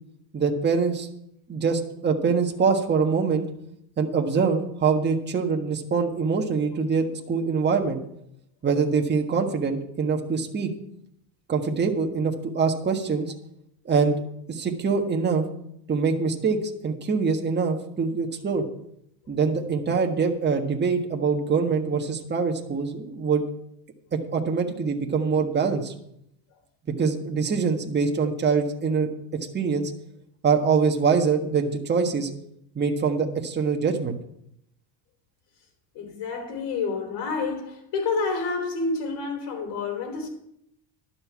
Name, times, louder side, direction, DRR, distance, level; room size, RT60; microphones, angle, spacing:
voice 1, 0.3-1.1 1.5-3.4 4.0-8.0 8.6-10.7 11.5-13.3 13.8-14.2 14.5-15.4 15.9-16.6 16.8-18.6 19.3-23.4 24.1-25.9 27.0-29.1 29.5-29.9 30.4-32.3 32.7-34.1, right 5 dB, 25° right, 1.5 m, -24 dB
voice 2, 35.9-40.3, left 4 dB, 65° left, 3.8 m, -29 dB
12.0 x 5.7 x 8.5 m
supercardioid pair, 105°, 45 cm